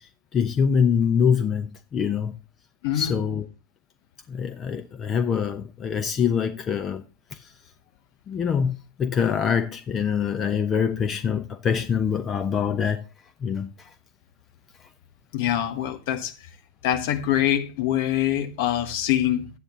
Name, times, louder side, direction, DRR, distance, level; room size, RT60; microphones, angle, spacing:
voice 1, 0.3-2.3 2.9-3.4 4.3-7.0 7.3-7.5 8.3-13.0 13.4-13.9, left 7 dB, 25° left, 0.9 m, -24 dB
voice 2, 2.8-3.2 15.3-16.3 16.8-19.5, left 11 dB, 50° left, 1.6 m, -24 dB
11.0 x 8.9 x 3.9 m
figure-of-eight pair, 90°, 0 cm